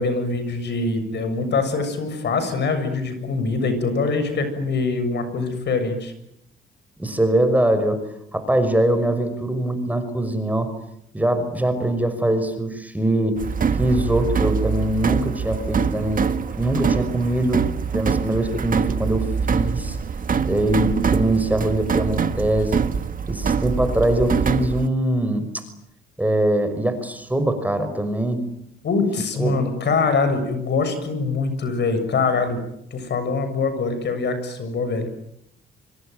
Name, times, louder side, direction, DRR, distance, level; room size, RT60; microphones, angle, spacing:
voice 1, 0.0-6.1 28.8-32.6 32.9-35.1, left 4 dB, 60° left, 10 dB, 7.2 m, -23 dB
voice 2, 7.0-8.0 8.3-10.7 11.1-13.4 13.8-16.3 16.6-17.7 17.9-20.0 20.4-22.9 23.3-25.6 26.2-28.4 29.4-29.6, right 1 dB, 10° right, 9 dB, 5.8 m, -22 dB
sound 1, 13.4-24.9, right 6 dB, 45° right, 1.8 m, -24 dB
25.5 x 25.0 x 9.3 m, 0.76 s
cardioid pair, 90°, 20 cm